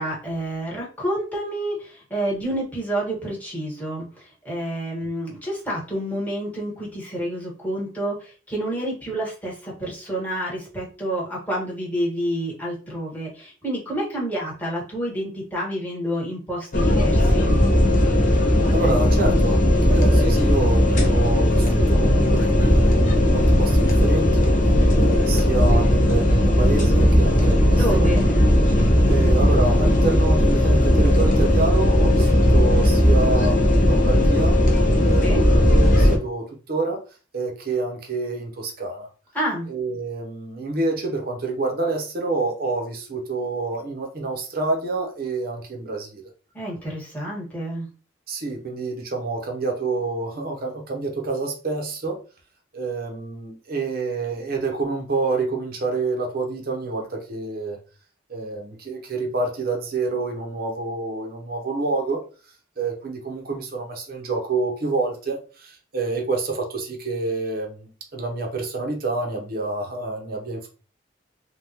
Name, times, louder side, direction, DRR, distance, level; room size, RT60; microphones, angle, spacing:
voice 1, 0.0-17.6 27.7-28.3 35.2-35.4 39.3-39.7 46.5-47.9, right 1 dB, 10° left, -4 dB, 1.3 m, -29 dB
sound 1, 16.7-36.2, equal, 45° left, 0.7 m, -17 dB
voice 2, 18.7-24.5 24.9-28.1 29.0-34.6 35.0-37.0 37.3-39.1 39.7-46.2 48.3-52.2 52.7-57.8 58.3-62.2 62.8-70.7, right 3 dB, 55° right, 2 dB, 0.7 m, -28 dB
3.4 x 2.2 x 2.8 m, 0.36 s
head